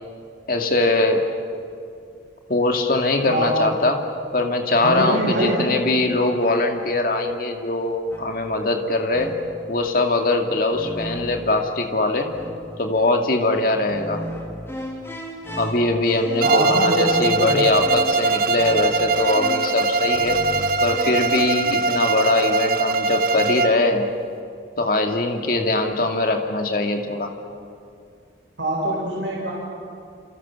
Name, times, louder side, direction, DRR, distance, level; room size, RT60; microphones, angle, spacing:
voice 1, 0.5-1.2 2.5-4.0 4.3-9.3 9.7-12.3 12.8-14.2 15.6-20.4 20.8-24.1 24.8-27.3, left 2 dB, 50° left, 4 dB, 2.3 m, -21 dB
voice 2, 3.3-3.7 4.8-5.7 16.4-17.7 28.6-29.5, right 1 dB, 85° right, -3 dB, 5.0 m, -23 dB
sound 1, 8.1-8.6 9.1-9.7 10.7-11.7 12.3-12.9 13.9-21.4, left 1 dB, 15° left, 2.8 m, -35 dB
Bowed string instrument, 16.4-23.9, right 3 dB, 50° right, 0.9 m, -22 dB
28.5 x 28.0 x 7.3 m, 2.4 s
head